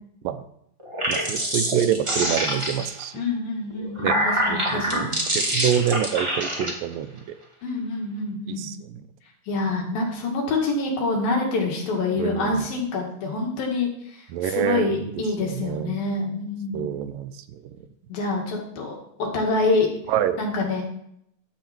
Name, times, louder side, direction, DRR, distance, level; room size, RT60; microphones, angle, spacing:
sound 1, 0.8-3.0 3.7-6.7, right 1 dB, 30° right, 0.5 m, -25 dB
voice 1, 1.1-3.1 4.0-4.2 4.5-7.3 8.5-9.0 12.2-12.7 14.3-15.1 15.4-16.0 16.7-17.8 20.1-20.4, right 10 dB, 75° right, 9 dB, 2.3 m, -27 dB
voice 2, 3.1-5.3 7.6-8.7 9.5-16.9 18.1-19.9 20.4-20.8, left 3 dB, 75° left, 0 dB, 3.8 m, -26 dB
11.5 x 8.1 x 4.4 m, 0.72 s
omnidirectional pair, 4.2 m